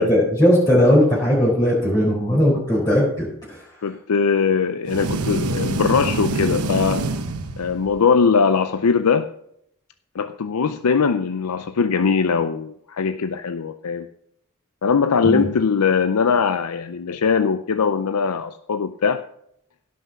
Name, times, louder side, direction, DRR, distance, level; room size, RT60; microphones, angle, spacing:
voice 1, 0.0-3.6 15.2-15.4, equal, 20° left, -6 dB, 4.6 m, -18 dB
voice 2, 3.8-7.0 7.6-9.3 10.1-14.1 14.8-19.2, left 5 dB, 80° left, 9 dB, 0.5 m, -21 dB
sound 1, 4.9-8.0, right 2 dB, 75° right, 1.0 m, -25 dB
16.5 x 6.1 x 5.9 m, 0.74 s
head